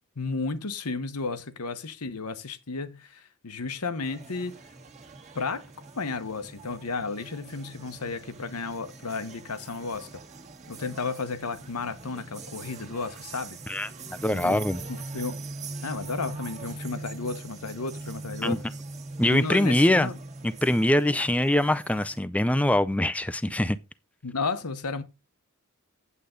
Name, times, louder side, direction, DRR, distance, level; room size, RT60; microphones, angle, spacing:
voice 1, 0.2-4.6 5.3-5.6 5.9-10.1 10.7-13.6 14.3-14.6 14.9-15.4 15.8-18.6 19.3-20.2 24.2-25.0, left 4 dB, 85° left, 1.1 m, -33 dB
sound 1, 4.0-22.2, right 3 dB, 30° right, 1.5 m, -42 dB
voice 2, 14.2-14.8 18.4-18.6 19.2-20.1 20.4-23.8, left 1 dB, 5° left, 0.4 m, -23 dB
8.5 x 8.3 x 3.8 m
head